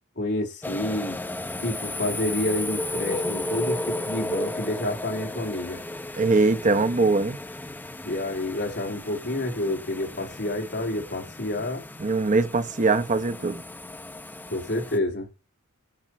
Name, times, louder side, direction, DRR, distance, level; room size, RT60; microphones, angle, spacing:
voice 1, 0.2-1.2 1.6-5.8 8.0-11.8 14.5-15.3, left 1 dB, 55° left, 3.1 m, -29 dB
sound 1, 0.6-15.0, left 1 dB, 10° left, 0.6 m, -34 dB
voice 2, 6.2-7.4 12.0-13.6, right 3 dB, 35° right, 0.9 m, -22 dB
10.5 x 5.3 x 4.4 m
head